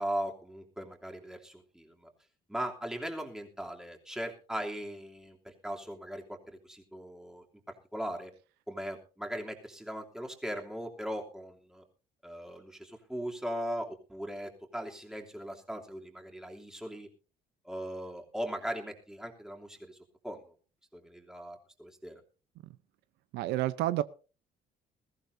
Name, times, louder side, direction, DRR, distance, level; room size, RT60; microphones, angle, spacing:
voice 1, 0.0-2.1 2.5-8.3 8.7-11.8 12.2-17.1 17.6-20.0 20.2-20.4 20.9-22.2, equal, 5° right, 3.0 m, -39 dB
voice 2, 23.3-24.0, right 15 dB, 85° right, 0.7 m, -29 dB
21.0 x 15.0 x 2.7 m
cardioid pair, 110°, 17 cm